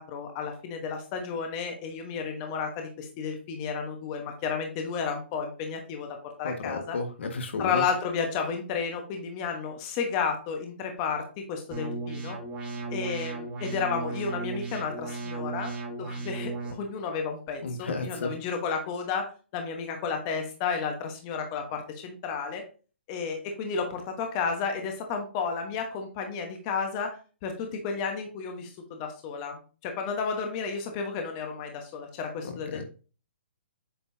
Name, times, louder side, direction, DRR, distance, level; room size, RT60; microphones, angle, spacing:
voice 1, 0.0-7.0 7.6-12.4 12.9-22.6 23.1-32.8, left 5 dB, 30° left, 4 dB, 1.1 m, -32 dB
voice 2, 6.4-7.8 17.6-18.3 32.4-32.8, left 3 dB, 70° left, 6 dB, 1.5 m, -33 dB
sound 1, 11.7-16.7, right 3 dB, 20° right, 1.9 m, -35 dB
7.9 x 4.3 x 2.7 m, 0.35 s
hypercardioid pair, 150°, 7 cm